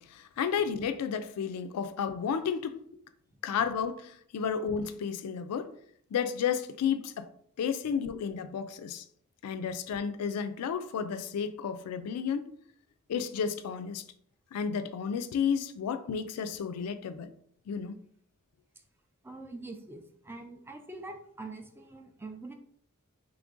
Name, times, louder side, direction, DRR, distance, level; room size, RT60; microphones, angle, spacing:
voice 1, 0.0-2.8 3.4-5.7 6.1-7.3 7.6-9.0 9.4-12.5 13.1-14.0 14.5-17.3 17.7-18.0, left 7 dB, 80° left, 0.3 m, -32 dB
voice 2, 19.2-22.5, right 2 dB, 10° right, 0.3 m, -44 dB
3.2 x 2.5 x 3.6 m
head